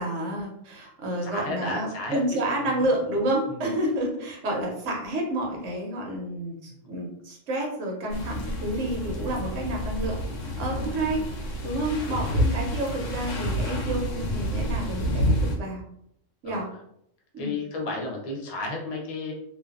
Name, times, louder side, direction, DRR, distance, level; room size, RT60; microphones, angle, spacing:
voice 1, 0.0-15.8 16.4-16.7 17.3-17.6, right 1 dB, 80° right, 0 dB, 1.0 m, -29 dB
voice 2, 1.2-2.9 3.5-3.7 10.7-11.1 16.4-16.6 17.4-19.3, left 2 dB, 50° left, -1 dB, 0.4 m, -34 dB
sound 1, 8.1-15.6, equal, 85° left, 0.9 m, -29 dB
2.5 x 2.1 x 2.3 m, 0.75 s
omnidirectional pair, 1.3 m